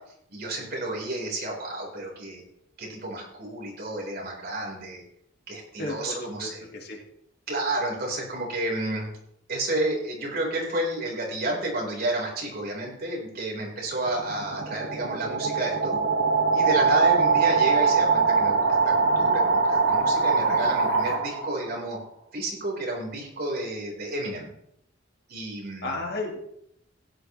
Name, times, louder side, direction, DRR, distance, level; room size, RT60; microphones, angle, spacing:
voice 1, 0.3-2.4 2.8-5.0 5.5-6.7 7.5-9.1 9.5-16.0 16.5-22.0 22.3-24.5 25.3-26.1, right 1 dB, 55° right, -2 dB, 4.5 m, -31 dB
voice 2, 5.8-7.0 25.8-26.4, left 2 dB, 55° left, 0 dB, 2.2 m, -33 dB
sound 1, 14.0-21.7, right 4 dB, 80° right, 1.6 m, -23 dB
16.0 x 10.5 x 3.3 m, 0.75 s
head